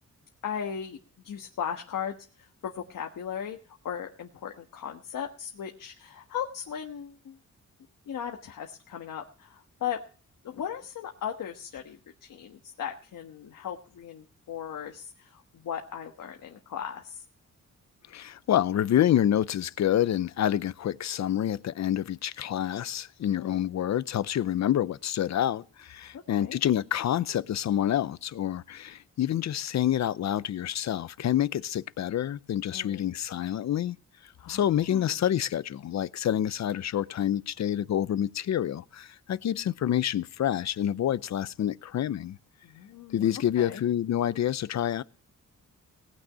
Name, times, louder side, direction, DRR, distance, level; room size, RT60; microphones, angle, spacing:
voice 1, 0.4-1.0 1.2-3.6 3.8-7.4 8.1-10.0 10.4-17.2 23.4-23.6 26.1-26.6 32.7-33.1 34.4-35.2 42.6-43.2 43.6-43.8, left 8 dB, 90° left, 1.5 m, -37 dB
voice 2, 18.1-34.0 34.4-42.4 43.1-45.0, left 11 dB, 60° left, 0.6 m, -27 dB
18.5 x 6.2 x 8.5 m
wide cardioid pair, 160°, 31 cm